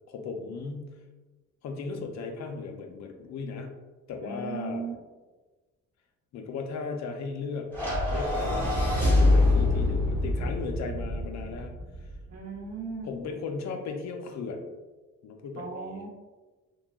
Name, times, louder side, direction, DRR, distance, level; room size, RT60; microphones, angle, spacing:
voice 1, 0.1-1.0 1.6-3.7 4.1-4.8 6.3-7.8 8.1-11.7 13.0-14.7 15.2-16.0, left 4 dB, 65° left, 4 dB, 0.5 m, -36 dB
voice 2, 4.2-4.9 12.3-13.1 15.6-16.1, right 4 dB, 55° right, -3 dB, 0.9 m, -37 dB
sound 1, 7.7-12.1, left 2 dB, 5° left, 1.3 m, -25 dB
3.1 x 2.3 x 2.3 m, 1.3 s
cardioid pair, 90°, 30 cm